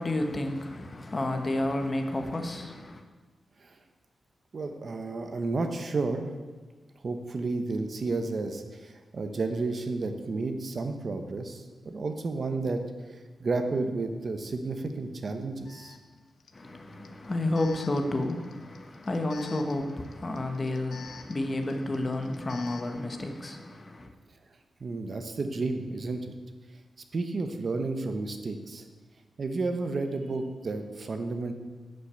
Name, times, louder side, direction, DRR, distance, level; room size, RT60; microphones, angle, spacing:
voice 1, 0.0-3.0 16.5-24.1, left 1 dB, 25° left, 5 dB, 1.1 m, -31 dB
voice 2, 4.5-6.3 7.0-12.8 13.4-16.0 24.8-26.3 27.1-28.9 29.4-31.5, right 3 dB, 40° right, 6 dB, 1.0 m, -31 dB
Alarm, 14.9-15.0 15.7-23.0, left 6 dB, 65° left, 0.8 m, -50 dB
11.5 x 6.1 x 8.1 m, 1.3 s
wide cardioid pair, 170°, 0 cm